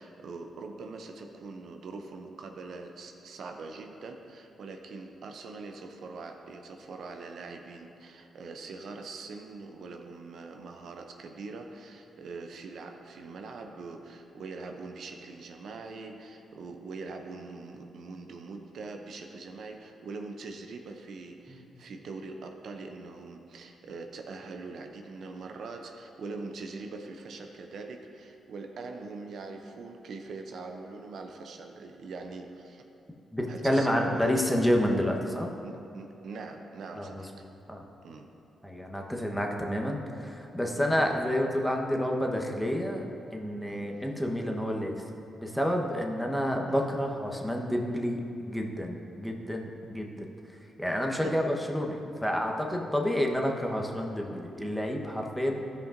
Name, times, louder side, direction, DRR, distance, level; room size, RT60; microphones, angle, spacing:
voice 1, 0.0-32.9 33.5-34.5 35.6-37.3 38.0-38.3 40.8-40.9 43.7-43.9 46.7-46.9 51.2-51.3, right 3 dB, 70° right, 4 dB, 0.5 m, -42 dB
voice 2, 33.3-35.5 37.0-37.8 38.6-45.1 45.4-55.6, equal, 5° left, 1 dB, 1.0 m, -29 dB
13.0 x 5.2 x 2.6 m, 2.7 s
supercardioid pair, 55°, 0 cm